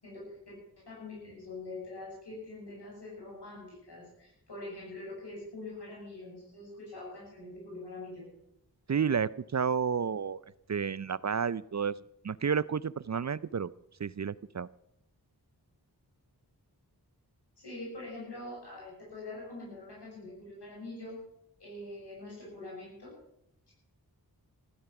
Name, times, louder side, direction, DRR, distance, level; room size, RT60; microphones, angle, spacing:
voice 1, 0.0-8.3 17.6-21.2 21.6-23.1, left 2 dB, 85° left, -4 dB, 6.8 m, -44 dB
voice 2, 8.9-10.4 10.7-11.9 12.2-13.7 14.0-14.7, right 6 dB, 45° right, 19 dB, 0.5 m, -31 dB
15.5 x 14.0 x 5.9 m, 0.78 s
wide cardioid pair, 65°, 40 cm